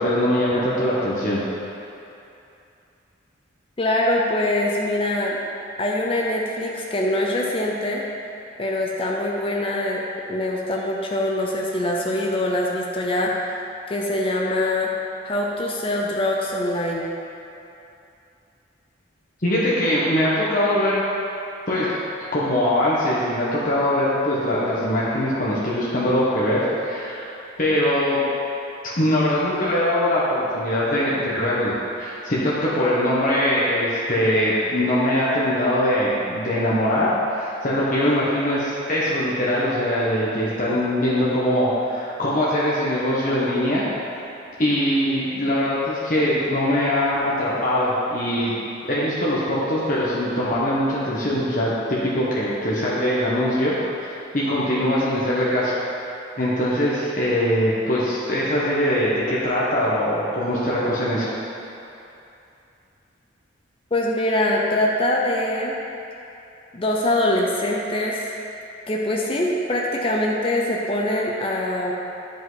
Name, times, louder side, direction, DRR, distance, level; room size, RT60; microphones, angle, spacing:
voice 1, 0.0-1.4 19.4-21.0 21.7-22.0 22.3-27.2 27.6-28.2 28.8-43.8 44.6-48.5 48.8-53.7 54.3-55.8 56.4-61.4, left 1 dB, 45° left, -8 dB, 1.1 m, -22 dB
voice 2, 3.8-5.4 5.8-8.0 8.6-10.0 10.3-13.5 13.9-14.9 15.2-17.1 63.9-65.7 66.7-68.4 68.9-71.9, left 1 dB, 30° left, -2 dB, 0.6 m, -23 dB
10.0 x 5.2 x 4.0 m, 2.7 s
head